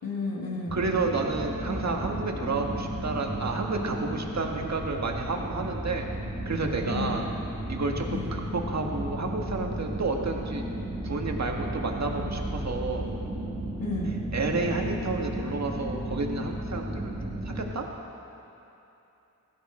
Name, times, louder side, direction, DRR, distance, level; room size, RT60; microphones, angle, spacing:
voice 1, 0.0-0.8 6.8-7.2 8.1-8.4 13.8-14.1, left 3 dB, 85° left, -4 dB, 2.8 m, -32 dB
sound 1, 0.7-17.7, right 1 dB, 15° right, 1.9 m, -34 dB
voice 2, 0.7-6.1 6.5-7.2 7.7-10.6 11.0-13.1 14.3-17.9, right 3 dB, 50° right, 1 dB, 1.8 m, -30 dB
17.0 x 14.5 x 4.4 m, 2.9 s
cardioid pair, 70°, 34 cm